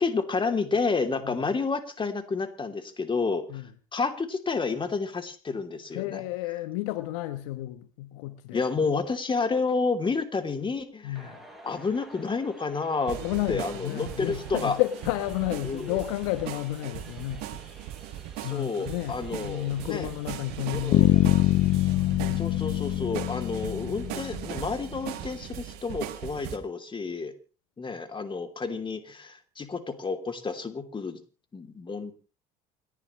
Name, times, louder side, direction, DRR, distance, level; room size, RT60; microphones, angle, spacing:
voice 1, 0.0-3.6 3.9-6.3 8.5-11.3 11.6-13.2 13.5-14.8 15.6-16.0 18.4-20.1 20.7-21.1 22.4-27.3 27.8-31.2 31.5-32.1, left 4 dB, 30° left, 6 dB, 3.0 m, -30 dB
voice 2, 5.9-8.9 11.0-11.4 13.2-17.6 18.4-21.5 22.2-22.5, left 16 dB, 75° left, 11 dB, 1.1 m, -32 dB
sound 1, 11.2-25.4, right 1 dB, ahead, 6.2 m, -52 dB
sound 2, 13.1-26.6, right 13 dB, 70° right, 1.8 m, -39 dB
Bass guitar, 20.9-24.8, left 16 dB, 60° left, 0.8 m, -24 dB
29.0 x 11.0 x 3.2 m, 0.35 s
hypercardioid pair, 60°, 18 cm